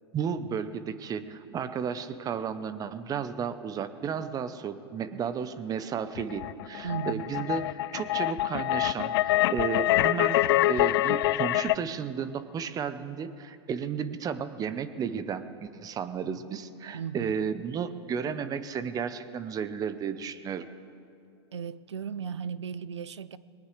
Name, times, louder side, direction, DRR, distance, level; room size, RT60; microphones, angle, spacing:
voice 1, 0.1-10.4 10.7-20.7, right 7 dB, 25° right, 13 dB, 0.8 m, -33 dB
sound 1, 6.2-11.8, left 15 dB, 60° left, 0.4 m, -25 dB
voice 2, 6.8-7.5 16.9-17.5 21.5-23.4, right 7 dB, 90° right, 17 dB, 0.5 m, -36 dB
21.0 x 19.0 x 3.3 m, 2.4 s
hypercardioid pair, 105°, 14 cm